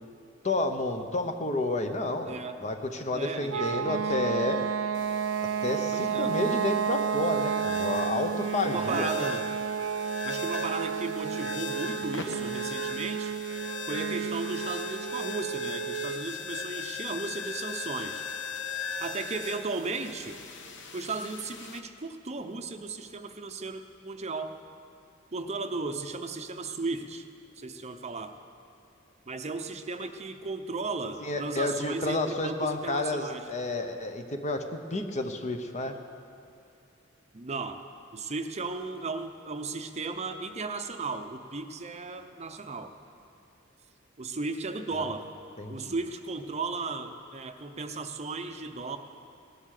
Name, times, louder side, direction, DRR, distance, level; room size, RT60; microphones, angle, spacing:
voice 1, 0.4-4.7 5.4-9.1 31.2-36.0 45.0-45.1 45.6-45.9, left 2 dB, 35° left, 6 dB, 1.0 m, -30 dB
voice 2, 2.3-2.6 3.1-4.0 5.6-6.3 8.6-9.5 10.2-13.3 13.9-18.2 19.0-20.4 20.9-24.5 25.3-27.2 27.6-28.3 29.3-33.4 37.3-37.8 38.1-42.9 44.2-45.3 45.7-49.0, right 3 dB, 35° right, 7 dB, 0.7 m, -35 dB
sound 1, 3.5-16.3, right 7 dB, 75° right, 0.4 m, -31 dB
sound 2, 4.9-21.8, left 4 dB, 65° left, 1.1 m, -39 dB
17.5 x 11.5 x 6.6 m, 2.5 s
head